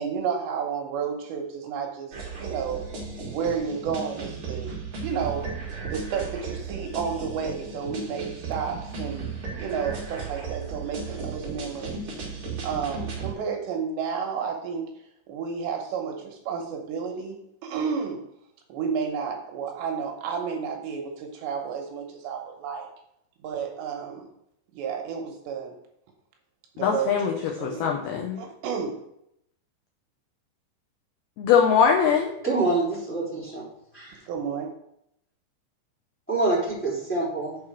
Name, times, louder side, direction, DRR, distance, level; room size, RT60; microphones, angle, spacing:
voice 1, 0.0-2.8 3.3-5.5 5.9-9.3 9.6-12.2 12.6-14.9 15.3-18.2 18.7-22.9 23.4-24.3 24.7-25.8 26.8-27.9 28.4-29.0 34.3-34.7, right 6 dB, 75° right, 2 dB, 3.0 m, -31 dB
sound 1, 2.1-13.3, right 4 dB, 50° right, 1.6 m, -35 dB
voice 2, 26.8-28.4 31.4-32.3, left 7 dB, 85° left, 2 dB, 2.2 m, -22 dB
voice 3, 32.4-33.6 33.9-34.2 36.3-37.6, right 2 dB, 5° left, -9 dB, 2.3 m, -26 dB
7.1 x 4.9 x 5.9 m, 0.77 s
omnidirectional pair, 5.4 m